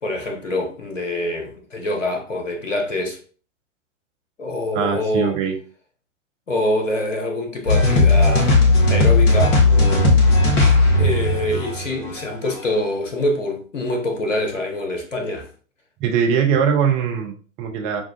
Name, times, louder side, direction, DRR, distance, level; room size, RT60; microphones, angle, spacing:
voice 1, 0.0-3.2 4.4-5.4 6.5-8.5 8.9-9.6 11.0-15.5, left 1 dB, 75° left, 1.2 m, -25 dB
voice 2, 4.8-5.5 16.0-18.0, right 7 dB, 20° right, 0.5 m, -21 dB
sound 1, 7.7-12.6, left 2 dB, 55° left, 1.5 m, -16 dB
6.2 x 2.4 x 2.4 m
figure-of-eight pair, 105°, 38 cm